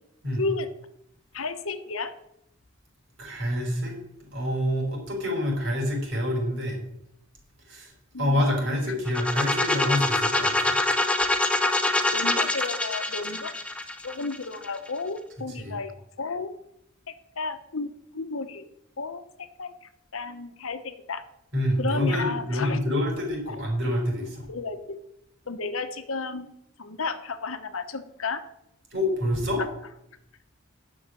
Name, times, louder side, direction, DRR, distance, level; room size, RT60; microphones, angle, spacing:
voice 1, 0.4-0.7 1.3-2.1 8.1-8.4 8.9-9.0 12.1-13.6 14.0-15.9 16.2-16.5 17.4-17.9 18.1-18.6 19.0-19.2 19.6-19.7 20.1-21.2 21.8-22.8 24.5-24.8 25.5-26.5 26.8-28.4 29.6-29.7, left 4 dB, 75° left, 9 dB, 1.0 m, -32 dB
voice 2, 3.2-4.0 4.3-6.8 7.7-7.9 8.2-10.8 15.5-15.8 21.5-24.5 28.9-29.6, left 1 dB, 55° right, 0 dB, 4.5 m, -27 dB
sound 1, 9.1-14.9, left 2 dB, 5° left, 0.7 m, -25 dB
10.5 x 6.4 x 6.3 m, 0.79 s
head